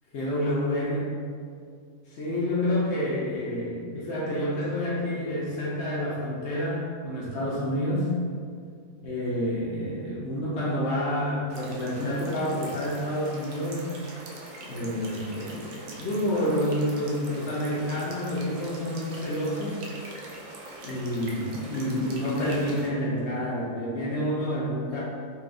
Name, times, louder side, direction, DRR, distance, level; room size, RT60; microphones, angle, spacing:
voice 1, 0.1-1.1 2.1-8.1 9.0-13.9 14.6-19.8 20.8-25.0, equal, 60° left, -6 dB, 0.8 m, -28 dB
sound 1, 11.5-22.9, right 2 dB, 70° right, 0.5 m, -43 dB
3.9 x 2.3 x 2.5 m, 2.2 s
omnidirectional pair, 1.5 m